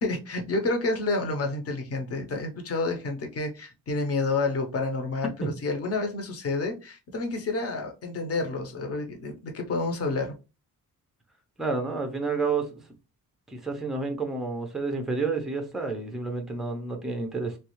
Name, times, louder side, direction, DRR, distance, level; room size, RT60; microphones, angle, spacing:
voice 1, 0.0-10.3, left 3 dB, 40° left, 0.7 m, -29 dB
voice 2, 11.6-12.7 13.5-17.6, right 4 dB, ahead, 0.4 m, -30 dB
3.1 x 2.3 x 3.0 m
wide cardioid pair, 180°, 36 cm